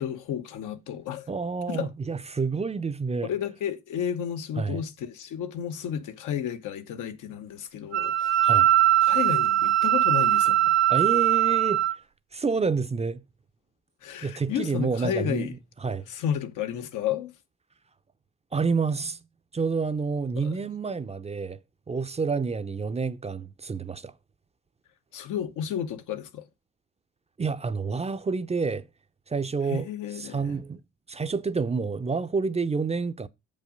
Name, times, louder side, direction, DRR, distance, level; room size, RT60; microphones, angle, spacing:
voice 1, 0.0-1.3 1.7-1.9 3.2-8.5 9.0-10.7 14.0-15.5 16.1-17.3 20.4-20.5 25.1-26.4 29.7-30.6, left 9 dB, 85° left, 1.1 m, -32 dB
voice 2, 1.3-3.3 4.6-4.8 8.4-8.7 10.9-11.8 12.3-13.2 14.2-15.5 15.8-16.1 18.5-19.2 19.5-21.6 21.9-24.1 27.4-28.9 29.3-29.9 30.2-30.8 31.1-33.3, right 4 dB, 20° right, 0.5 m, -28 dB
Wind instrument woodwind instrument, 7.9-12.0, right 12 dB, 60° right, 0.7 m, -21 dB
7.2 x 5.5 x 5.0 m
cardioid pair, 90°, 30 cm